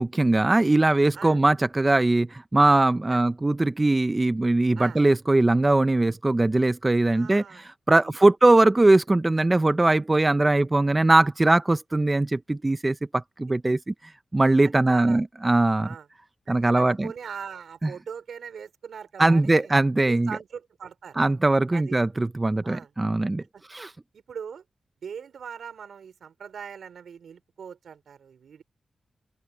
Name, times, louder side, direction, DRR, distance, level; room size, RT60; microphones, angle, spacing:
voice 1, 0.0-13.9 14.3-15.9 16.5-17.1 17.8-17.9 19.2-20.3 21.2-23.4 23.7-23.9, right 2 dB, 25° right, 0.6 m, -21 dB
voice 2, 7.0-7.7 7.9-8.0 14.6-15.2 15.8-16.1 16.5-19.7 20.1-21.1 21.7-22.0 22.6-22.9 23.5-23.6 24.1-24.6 25.0-28.6, right 7 dB, 80° right, 3.8 m, -40 dB
open air
cardioid pair, 75°, 0 cm